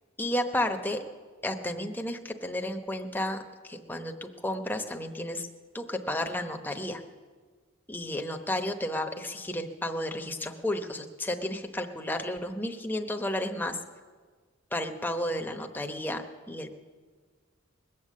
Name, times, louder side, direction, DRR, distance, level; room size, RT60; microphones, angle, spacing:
voice 1, 0.2-1.0 1.4-5.5 5.7-7.0 7.9-13.8 14.7-16.7, left 1 dB, 10° left, 5 dB, 0.9 m, -32 dB
21.0 x 8.4 x 7.4 m, 1.5 s
head